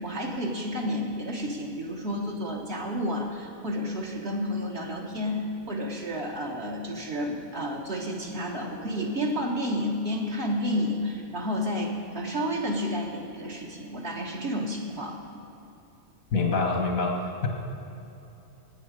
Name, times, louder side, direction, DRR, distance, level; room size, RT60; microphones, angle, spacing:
voice 1, 0.0-15.2, equal, 50° right, -2 dB, 1.6 m, -31 dB
voice 2, 16.3-17.5, left 4 dB, 85° left, 2 dB, 1.8 m, -26 dB
18.5 x 9.1 x 5.0 m, 2.9 s
omnidirectional pair, 1.4 m